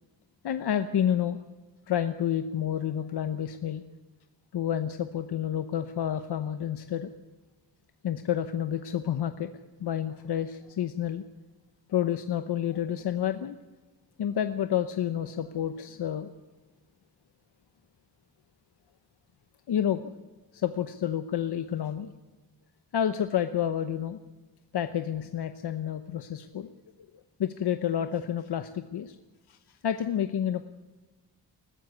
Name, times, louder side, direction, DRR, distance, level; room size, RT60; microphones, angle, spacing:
voice 1, 0.4-1.4 1.9-3.8 4.5-7.1 8.0-9.5 9.8-11.2 11.9-13.6 14.2-16.3 19.7-20.1 20.5-22.1 22.9-24.2 24.7-26.7 27.4-29.2 29.5-30.6, left 9 dB, 85° left, 9 dB, 1.0 m, -29 dB
21.0 x 15.0 x 8.2 m, 1.2 s
wide cardioid pair, 170°, 38 cm